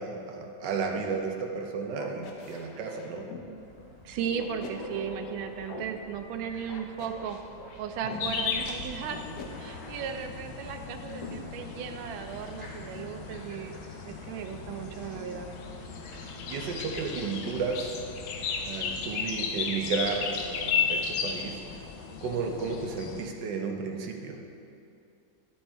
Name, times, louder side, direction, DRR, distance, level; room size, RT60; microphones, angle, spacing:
voice 1, 0.0-3.3 16.5-18.0 18.6-21.6 22.2-24.4, right 5 dB, 70° right, 2 dB, 1.3 m, -33 dB
sound 1, 0.9-1.1 1.9-3.5 4.3-5.8 6.7-8.2 9.1-10.4, left 4 dB, 65° left, 1.2 m, -43 dB
sound 2, 3.5-19.1, left 1 dB, 35° left, 0.7 m, -50 dB
voice 2, 4.0-7.4 7.8-9.2 9.6-13.7 14.1-15.5 17.2-17.3, right 7 dB, 85° right, 6 dB, 1.4 m, -36 dB
sound 3, 8.2-23.3, left 6 dB, 85° left, 1.4 m, -35 dB
11.5 x 4.3 x 3.4 m, 2.7 s
omnidirectional pair, 2.1 m